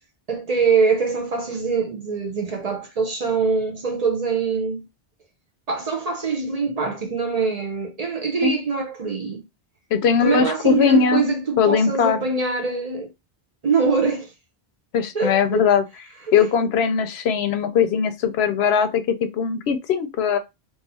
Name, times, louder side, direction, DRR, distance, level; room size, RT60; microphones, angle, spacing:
voice 1, 0.3-4.8 5.7-9.4 10.2-13.1 13.6-14.3 15.1-15.7, right 5 dB, 45° right, 0.6 m, -23 dB
voice 2, 9.9-11.3 11.6-12.2 14.9-15.8 16.3-20.4, left 7 dB, 85° left, 0.9 m, -20 dB
2.6 x 2.4 x 4.0 m
omnidirectional pair, 1.1 m